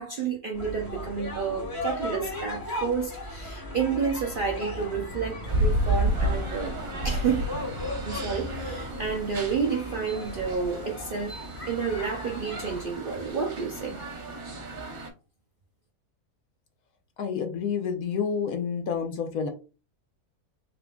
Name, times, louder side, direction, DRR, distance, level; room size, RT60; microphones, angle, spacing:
voice 1, 0.0-6.7 7.0-7.6 8.0-14.0, right 5 dB, 85° right, 0.4 m, -30 dB
sound 1, 0.5-12.8, left 1 dB, 15° left, 1.0 m, -37 dB
sound 2, 5.5-15.1, right 1 dB, 55° right, 1.3 m, -32 dB
voice 2, 17.2-19.5, left 6 dB, 70° left, 1.0 m, -29 dB
3.8 x 3.5 x 2.3 m
omnidirectional pair, 1.6 m